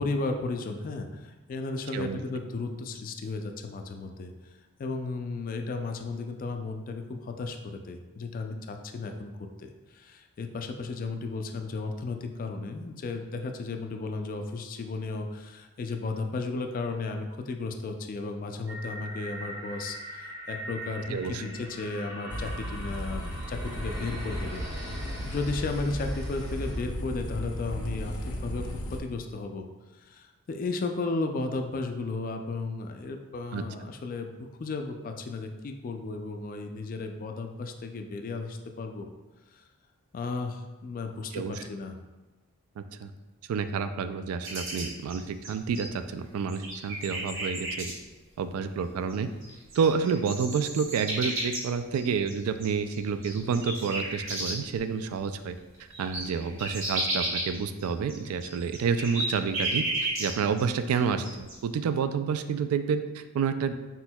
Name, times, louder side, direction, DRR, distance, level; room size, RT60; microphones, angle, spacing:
voice 1, 0.0-4.3 4.8-9.3 9.6-24.7 24.9-29.7 29.9-39.1 39.5-39.6 40.1-41.4 41.7-42.0, left 3 dB, 40° left, 5 dB, 0.3 m, -34 dB
sound 1, 18.7-26.8, right 1 dB, 15° right, 0.6 m, -42 dB
voice 2, 21.1-21.4 33.5-33.6 41.3-41.6 42.8-43.1 43.5-47.9 48.4-49.3 49.7-55.5 56.0-63.7, right 6 dB, 90° right, 11 dB, 0.3 m, -29 dB
sound 2, 22.3-29.0, equal, 85° left, 0.6 m, -35 dB
sound 3, 44.4-46.1 46.5-47.9 49.1-49.2 49.4-54.8 55.2-55.3 55.6-60.6 60.9-61.6, right 2 dB, 60° right, 1.2 m, -33 dB
4.3 x 4.1 x 2.2 m, 1.2 s
head